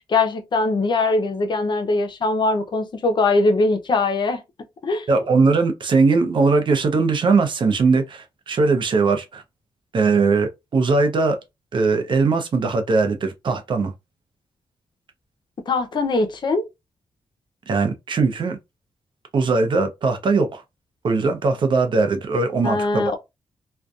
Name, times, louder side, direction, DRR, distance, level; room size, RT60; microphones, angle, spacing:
voice 1, 0.0-4.4 4.8-5.0 15.7-16.6 22.6-23.2, left 3 dB, 50° left, 0.6 m, -21 dB
voice 2, 5.1-9.4 9.9-11.4 11.7-13.9 17.7-18.6 19.3-20.6 21.0-23.1, right 4 dB, 55° right, 0.6 m, -20 dB
2.5 x 2.2 x 2.3 m
cardioid pair, 65°, 10 cm